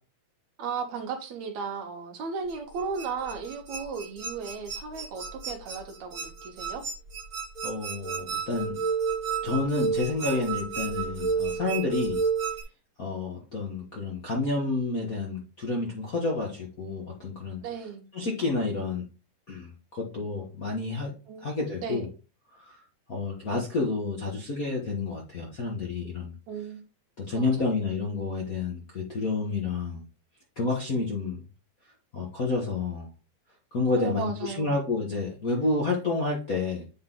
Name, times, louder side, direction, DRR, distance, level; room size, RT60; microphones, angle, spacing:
voice 1, 0.6-6.8 17.6-18.1 21.3-21.5 21.8-22.1 26.5-26.8 27.4-27.7 34.0-34.7, right 5 dB, 70° right, 2.4 m, -35 dB
sound 1, 2.5-12.6, right 5 dB, 45° right, 2.3 m, -31 dB
voice 2, 7.6-8.8 9.4-12.2 13.0-17.6 18.1-19.0 19.5-21.1 21.4-22.1 22.5-22.8 23.1-26.3 27.2-30.0 30.6-31.4 32.1-33.1 33.7-36.8, left 3 dB, 45° left, 1.2 m, -29 dB
8.7 x 4.0 x 3.8 m
omnidirectional pair, 3.4 m